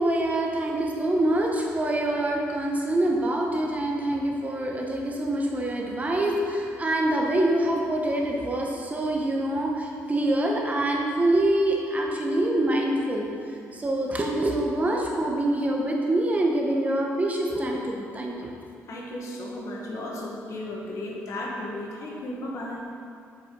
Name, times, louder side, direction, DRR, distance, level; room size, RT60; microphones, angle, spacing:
voice 1, 0.0-13.3 13.7-18.5, right 1 dB, 25° right, 0 dB, 0.9 m, -25 dB
voice 2, 18.9-22.8, left 1 dB, 65° left, -2 dB, 1.2 m, -34 dB
7.1 x 4.9 x 3.7 m, 2.5 s
cardioid pair, 85°, 6 cm